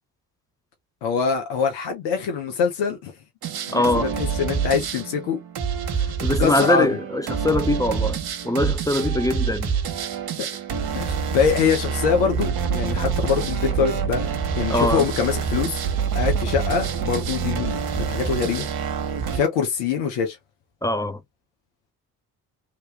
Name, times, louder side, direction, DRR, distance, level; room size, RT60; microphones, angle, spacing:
voice 1, 1.0-3.1 3.7-5.4 5.8-6.9 10.9-14.3 14.6-15.8 16.1-18.6 19.3-20.4, left 6 dB, 70° left, 1.1 m, -24 dB
sound 1, 3.4-19.4, right 6 dB, 50° right, 1.3 m, -26 dB
voice 2, 3.7-4.1 6.2-8.2 8.4-9.7 14.7-15.1 20.8-21.2, left 1 dB, 10° left, 0.6 m, -22 dB
3.2 x 3.0 x 3.1 m
hypercardioid pair, 50°, 46 cm